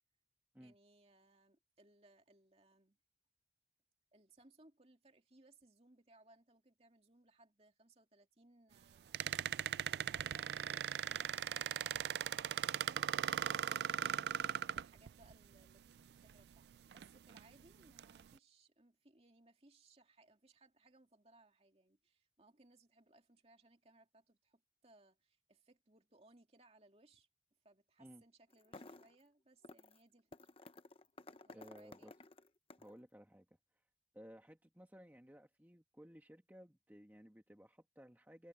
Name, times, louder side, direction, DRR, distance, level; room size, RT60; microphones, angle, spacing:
voice 1, 0.6-3.0 4.1-9.6 9.9-14.4 14.7-16.7 16.9-27.3 27.6-30.5 31.4-32.1, right 2 dB, 35° right, 2.6 m, -67 dB
sound 1, 9.1-15.3 16.3-16.4 16.9-17.4 18.0-18.2, right 9 dB, 70° right, 0.3 m, -38 dB
sound 2, 28.5-29.2 29.6-30.0 30.3-33.0, left 2 dB, 35° left, 0.9 m, -55 dB
voice 2, 31.5-32.1 32.8-33.4 34.1-38.5, equal, 10° right, 1.4 m, -58 dB
head